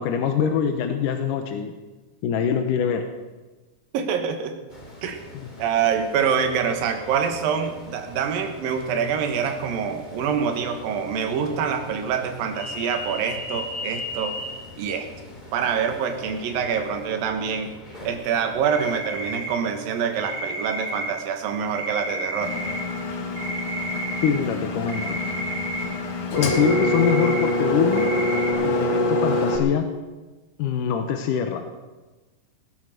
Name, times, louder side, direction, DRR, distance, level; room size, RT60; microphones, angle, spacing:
voice 1, 0.0-1.7 2.2-3.0 5.3-5.5 24.2-25.2 26.3-28.1 28.6-29.9 30.6-31.7, left 8 dB, 75° left, 5 dB, 2.5 m, -24 dB
voice 2, 3.9-4.6 5.0-5.2 5.6-14.4 14.8-15.1 15.5-17.7 18.0-22.5, right 7 dB, 85° right, 5 dB, 3.0 m, -25 dB
sound 1, 4.7-19.6, left 2 dB, 15° left, 2.3 m, -40 dB
sound 2, 18.7-19.9 20.2-21.1 21.7-22.8 23.2-24.6 24.9-25.8 26.4-27.5 27.9-28.5, right 2 dB, 40° right, 5.3 m, -31 dB
Engine, 22.4-29.6, left 2 dB, 45° left, 2.4 m, -25 dB
19.5 x 11.0 x 6.6 m, 1.2 s
omnidirectional pair, 4.0 m